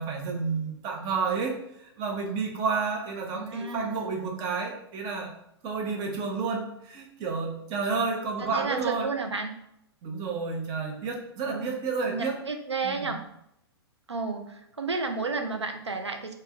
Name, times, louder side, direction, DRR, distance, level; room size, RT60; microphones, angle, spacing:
voice 1, 0.0-1.6 2.0-5.3 5.6-9.1 10.0-12.4 12.8-13.1, right 4 dB, 30° right, 2 dB, 0.7 m, -30 dB
voice 2, 3.3-4.0 8.4-9.5 11.5-11.7 12.1-13.2 14.1-16.3, right 4 dB, 90° right, 5 dB, 0.4 m, -32 dB
3.4 x 2.2 x 3.5 m, 0.77 s
figure-of-eight pair, 110°, 14 cm